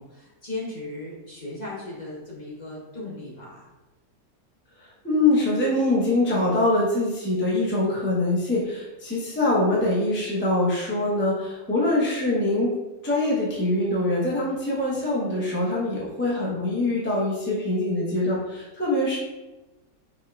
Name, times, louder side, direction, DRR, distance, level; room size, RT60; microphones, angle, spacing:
voice 1, 0.0-3.7, left 2 dB, 30° left, -6 dB, 1.1 m, -37 dB
voice 2, 4.8-12.7 13.0-19.2, left 2 dB, 10° left, -6 dB, 0.6 m, -24 dB
5.5 x 3.5 x 2.4 m, 1.1 s
omnidirectional pair, 1.8 m